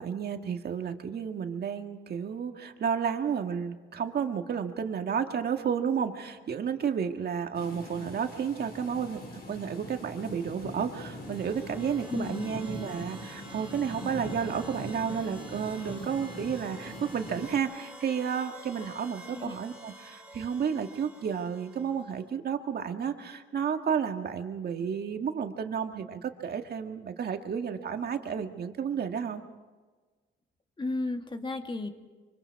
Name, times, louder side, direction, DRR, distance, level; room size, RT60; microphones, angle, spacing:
voice 1, 0.0-29.4, right 7 dB, 55° right, 5 dB, 1.8 m, -32 dB
sound 1, 7.5-17.6, equal, 50° left, 4.9 m, -42 dB
sound 2, 10.9-22.2, right 1 dB, 10° right, 6.2 m, -49 dB
voice 2, 12.1-12.5 18.8-18.9 19.3-19.6 30.8-31.9, left 2 dB, 25° left, 6 dB, 2.0 m, -33 dB
25.0 x 24.5 x 4.8 m, 1.3 s
cardioid pair, 90°, 20 cm